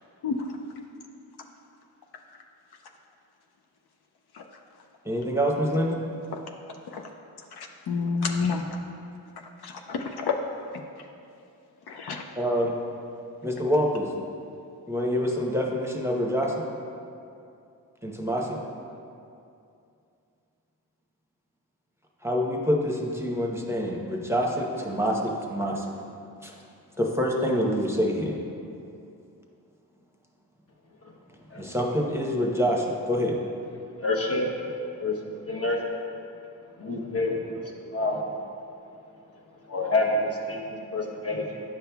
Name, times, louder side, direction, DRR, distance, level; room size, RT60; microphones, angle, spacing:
voice 1, 5.0-6.0 12.4-12.7 13.4-14.1 14.9-16.6 18.0-18.6 22.2-25.9 26.4-26.5 27.0-28.4 31.5-33.4, equal, 5° right, -1 dB, 0.8 m, -26 dB
voice 2, 7.5-8.8 9.6-10.3 11.9-12.2, left 5 dB, 75° left, 3 dB, 0.5 m, -29 dB
voice 3, 34.0-34.5 35.0-35.2 35.4-35.8 36.8-38.2 39.7-41.6, left 2 dB, 35° left, 0 dB, 1.0 m, -28 dB
9.3 x 5.5 x 2.3 m, 2.6 s
cardioid pair, 50°, 38 cm